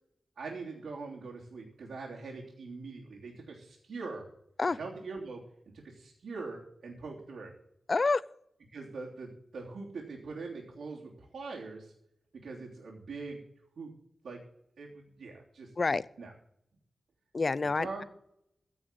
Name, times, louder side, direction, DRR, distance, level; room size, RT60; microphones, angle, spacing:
voice 1, 0.4-4.3 4.7-5.4 5.7-7.5 8.7-11.9 12.3-13.4 13.8-13.9 14.2-14.4 14.8-15.7 16.2-16.3 17.8-18.0, right 4 dB, 80° right, -5 dB, 3.3 m, -42 dB
voice 2, 7.9-8.2 15.8-16.0 17.3-18.0, left 3 dB, 35° left, 19 dB, 0.5 m, -28 dB
15.5 x 6.4 x 7.4 m, 0.74 s
wide cardioid pair, 140°, 0 cm